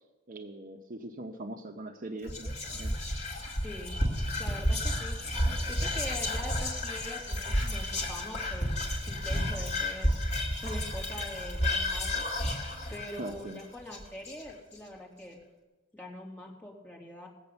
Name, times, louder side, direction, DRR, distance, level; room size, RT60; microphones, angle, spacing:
voice 1, 0.3-2.9 13.2-13.6, right 1 dB, 40° right, 4 dB, 0.8 m, -41 dB
Whispering, 2.2-14.7, left 1 dB, 35° left, 2.2 m, -31 dB
voice 2, 3.6-4.0 4.4-5.2 5.7-8.7 9.1-10.1 10.6-12.2 12.9-15.4 15.9-17.3, left 1 dB, 10° left, -2 dB, 2.8 m, -43 dB
19.0 x 8.0 x 7.0 m, 1.1 s
head